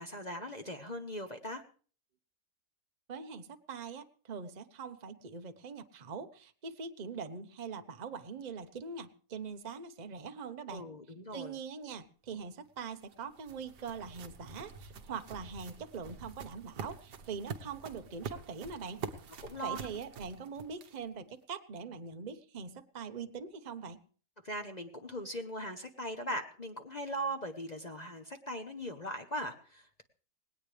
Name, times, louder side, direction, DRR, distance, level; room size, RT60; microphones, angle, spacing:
voice 1, 0.0-1.6 10.7-11.6 19.4-19.8 24.4-30.0, equal, 30° left, 4 dB, 1.0 m, -39 dB
voice 2, 3.1-10.9 11.3-19.0 19.6-24.0, right 5 dB, 30° right, 8 dB, 0.9 m, -43 dB
sound 1, 12.7-21.2, right 5 dB, 85° right, 1.8 m, -46 dB
19.5 x 17.5 x 3.4 m, 0.41 s
omnidirectional pair, 1.8 m